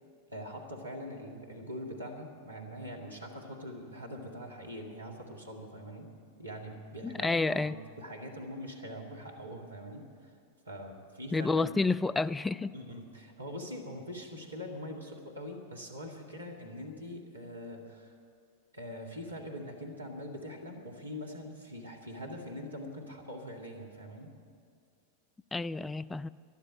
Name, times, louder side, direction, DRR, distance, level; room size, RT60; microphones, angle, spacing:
voice 1, 0.3-6.1 6.4-10.3 10.7-12.0 12.7-18.2 18.7-24.3, equal, 80° right, 0 dB, 1.9 m, -43 dB
voice 2, 7.0-7.8 11.3-12.7 25.5-26.3, left 3 dB, 10° left, 18 dB, 0.3 m, -29 dB
12.0 x 12.0 x 8.6 m, 2.3 s
figure-of-eight pair, 90°, 0 cm